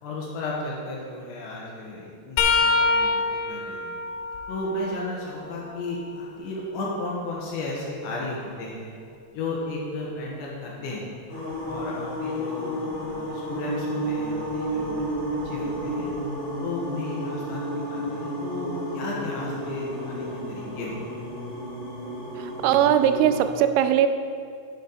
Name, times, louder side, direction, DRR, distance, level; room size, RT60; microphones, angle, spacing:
voice 1, 0.0-3.9 4.5-8.9 9.3-11.1 11.6-15.0 15.5-16.1 16.6-21.0, left 2 dB, 70° left, -3 dB, 3.3 m, -34 dB
sound 1, 2.4-6.1 6.7-8.6 11.5-11.7 12.9-13.1 14.4-14.5, left 3 dB, 85° left, 3.3 m, -28 dB
sound 2, 11.3-23.4, equal, 50° left, 3.3 m, -31 dB
voice 2, 22.4-24.1, right 10 dB, 85° right, 9 dB, 3.0 m, -20 dB
10.0 x 8.5 x 4.1 m, 2.2 s
omnidirectional pair, 5.9 m